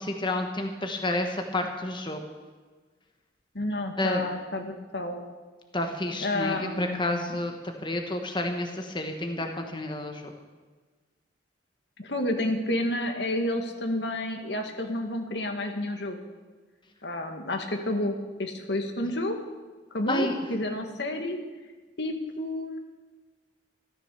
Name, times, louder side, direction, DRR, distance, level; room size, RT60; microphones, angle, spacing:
voice 1, 0.0-2.2 4.0-4.2 5.7-7.5 7.8-10.3 20.1-20.3, left 1 dB, 25° left, 4 dB, 1.3 m, -30 dB
voice 2, 3.5-5.2 6.2-7.3 12.0-16.2 17.0-18.1 18.4-19.4 19.9-21.4 22.0-22.8, left 1 dB, 70° left, 4 dB, 1.9 m, -30 dB
14.0 x 13.0 x 6.9 m, 1.4 s
head